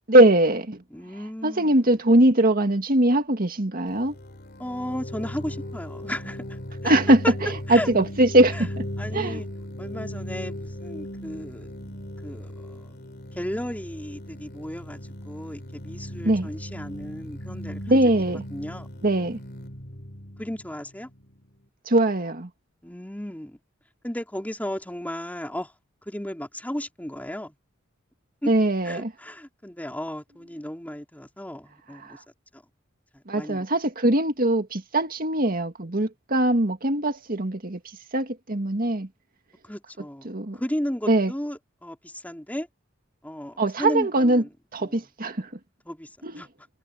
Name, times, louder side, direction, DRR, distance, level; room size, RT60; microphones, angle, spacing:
voice 1, 0.1-0.8 1.4-4.1 6.8-7.2 7.7-8.8 9.1-9.4 16.2-16.5 17.9-18.4 19.0-19.4 21.9-22.5 28.5-29.1 32.0-32.2 33.3-37.8 38.1-39.1 40.2-40.6 41.1-41.3 43.6-44.4 44.7-45.5 46.2-46.4, right 1 dB, 45° right, 2.1 m, -21 dB
voice 2, 0.9-2.0 4.6-6.9 7.2-7.3 7.7-7.9 8.5-8.7 9.0-9.5 9.8-11.7 12.2-12.9 13.3-15.0 15.2-18.0 18.5-18.9 20.4-21.1 22.8-23.6 24.0-25.7 26.0-27.5 28.4-28.5 28.8-32.2 32.5-32.6 33.1-33.7 39.6-40.3 40.5-42.7 43.2-44.5 44.8-45.0 45.8-46.7, equal, 10° left, 3.1 m, -34 dB
sound 1, 3.9-21.5, equal, 55° left, 3.0 m, -37 dB
head